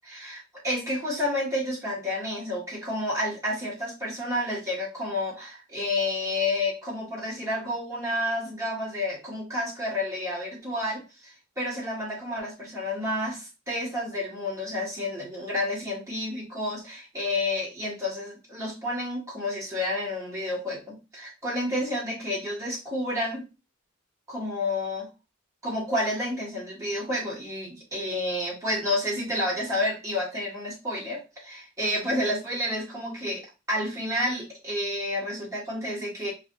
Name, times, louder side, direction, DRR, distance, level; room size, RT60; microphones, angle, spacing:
voice 1, 0.1-23.4 24.3-25.1 25.6-36.3, left 1 dB, 15° right, -6 dB, 1.6 m, -30 dB
4.9 x 2.5 x 2.6 m, 0.29 s
head